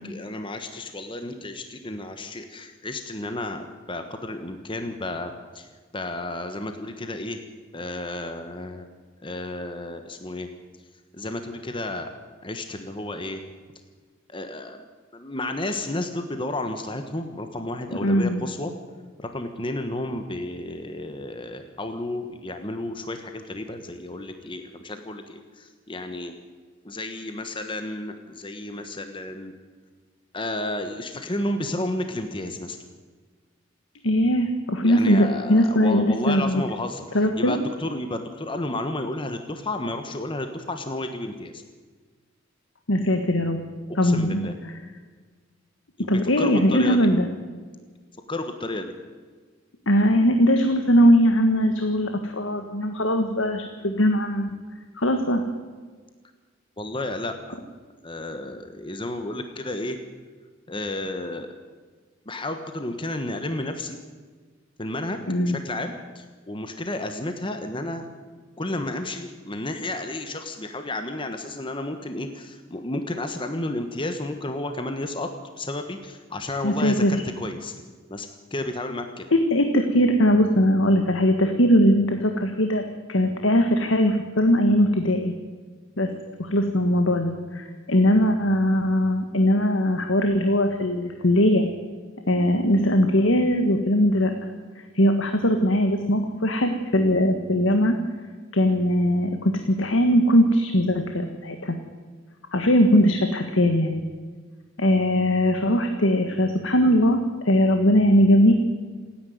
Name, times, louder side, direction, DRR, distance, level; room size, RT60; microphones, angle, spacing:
voice 1, 0.0-5.7 5.9-7.4 7.7-8.9 9.2-10.5 11.1-12.1 12.4-13.4 14.3-14.8 15.1-18.7 19.2-26.3 26.8-29.5 30.3-32.8 34.8-41.6 43.9-44.5 46.0-47.1 48.3-48.9 56.8-57.6 58.0-60.0 60.7-61.5 62.3-64.0 64.8-68.1 68.6-75.3 75.6-77.7 78.1-79.3, left 1 dB, 25° left, 7 dB, 1.3 m, -32 dB
voice 2, 18.0-18.4 34.0-36.6 37.1-37.6 42.9-43.6 43.9-44.4 46.1-47.3 49.9-54.5 55.0-55.4 65.3-65.6 76.6-77.2 79.3-82.8 83.1-85.3 86.0-86.1 86.4-91.7 92.3-94.5 94.9-98.0 98.5-101.7 102.5-104.0 104.8-107.2 107.4-108.5, equal, 75° left, 6 dB, 1.6 m, -20 dB
27.0 x 10.5 x 9.5 m, 1.5 s
head